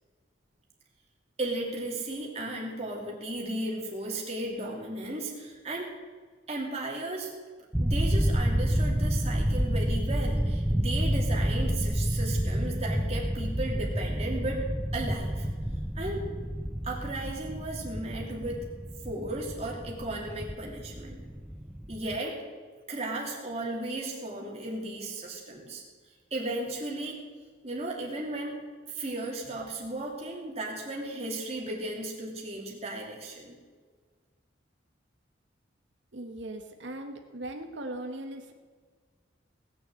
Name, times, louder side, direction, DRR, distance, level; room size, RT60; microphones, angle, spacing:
voice 1, 1.4-6.0 6.5-7.3 7.8-14.7 14.9-15.5 15.9-16.3 16.8-18.7 19.0-21.2 21.9-22.4 22.9-25.8 26.3-27.2 27.6-28.6 28.9-33.5, right 1 dB, 35° right, -2 dB, 2.9 m, -35 dB
sound 1, 7.7-22.2, equal, 5° right, 0.5 m, -29 dB
voice 2, 36.1-38.5, right 1 dB, 70° right, 4 dB, 1.2 m, -39 dB
18.5 x 6.9 x 7.7 m, 1.6 s
head